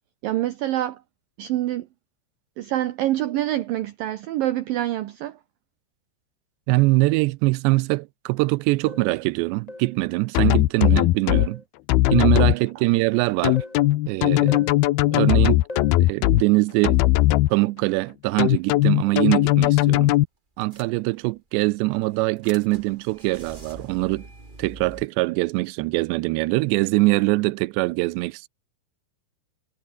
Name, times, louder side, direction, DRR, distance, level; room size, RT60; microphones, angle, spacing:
voice 1, 0.2-1.0 1.4-1.9 2.6-5.4, right 14 dB, 70° right, 2.3 m, -26 dB
voice 2, 6.7-11.6 12.1-13.6 14.1-14.7 15.1-15.6 16.0-17.0 17.5-20.2 20.6-24.3 24.6-28.5, right 22 dB, 85° right, 2.8 m, -23 dB
sound 1, 8.9-9.2 9.7-10.0 11.3-11.6 12.1-12.4 13.6-13.9 14.5-14.8 15.7-16.0 18.3-18.5 19.1-19.3, left 2 dB, 10° left, 2.3 m, -39 dB
sound 2, 10.3-11.5 11.9-12.5 13.4-16.4 16.8-17.5 18.4-20.2, left 17 dB, 75° left, 2.6 m, -18 dB
sound 3, 19.7-19.9 20.1-20.2 20.6-21.4 21.9-25.1, right 2 dB, 15° right, 2.2 m, -45 dB
omnidirectional pair, 5.0 m